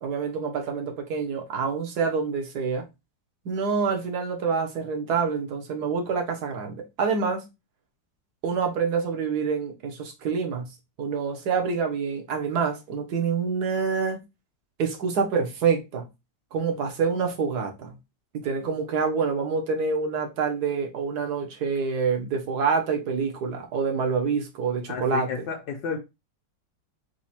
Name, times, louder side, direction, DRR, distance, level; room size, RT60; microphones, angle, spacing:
voice 1, 0.0-2.8 3.4-7.4 8.4-14.2 14.8-16.1 16.5-17.9 18.3-25.4, right 5 dB, 60° right, 1.6 m, -27 dB
voice 2, 24.9-26.0, left 6 dB, 80° left, 1.6 m, -31 dB
4.7 x 2.4 x 4.2 m
omnidirectional pair, 2.0 m